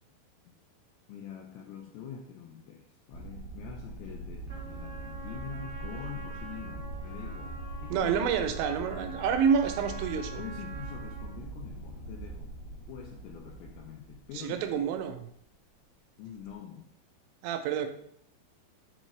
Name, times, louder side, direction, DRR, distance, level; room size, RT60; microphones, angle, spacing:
voice 1, 1.1-8.1 10.4-12.5 12.9-14.7 16.2-16.9, left 8 dB, 90° left, 1 dB, 2.4 m, -45 dB
sound 1, 3.1-15.2 16.3-16.5, right 2 dB, 60° left, 0.7 m, -42 dB
Trumpet, 4.5-11.4, right 2 dB, 35° right, 0.7 m, -46 dB
voice 2, 7.9-10.4 14.3-15.3 17.4-17.9, right 7 dB, 80° right, 7 dB, 2.7 m, -28 dB
9.9 x 3.9 x 3.2 m, 0.67 s
omnidirectional pair, 5.5 m